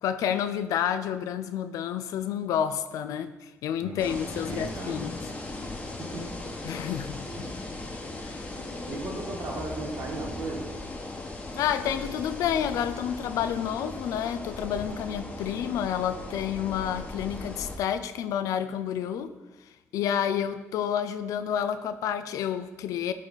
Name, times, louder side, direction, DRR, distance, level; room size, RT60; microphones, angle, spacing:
voice 1, 0.0-5.2 6.6-7.5 8.2-8.5 11.5-19.3 19.9-23.1, left 9 dB, 85° left, 0.4 m, -29 dB
voice 2, 3.8-5.1 6.0-6.3 7.3-7.6 8.9-10.7, right 2 dB, 65° right, 1.8 m, -36 dB
sound 1, 4.0-17.8, left 2 dB, 25° left, 1.3 m, -38 dB
9.8 x 4.1 x 4.0 m
cardioid pair, 85°, 6 cm